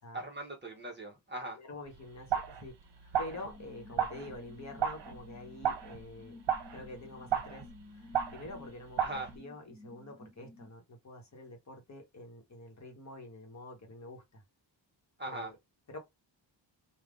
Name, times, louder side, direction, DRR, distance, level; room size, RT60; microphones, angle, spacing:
voice 1, 0.1-1.6 9.0-9.3 15.2-15.5, right 1 dB, 25° right, 1.0 m, -40 dB
voice 2, 1.5-2.8 3.2-6.4 6.7-14.4 15.3-15.6 15.9-16.0, left 2 dB, 40° left, 1.1 m, -47 dB
sound 1, 1.9-9.4, right 8 dB, 70° right, 0.9 m, -35 dB
sound 2, 3.3-10.7, left 2 dB, 5° left, 1.0 m, -54 dB
3.4 x 2.4 x 3.7 m
wide cardioid pair, 140°, 45 cm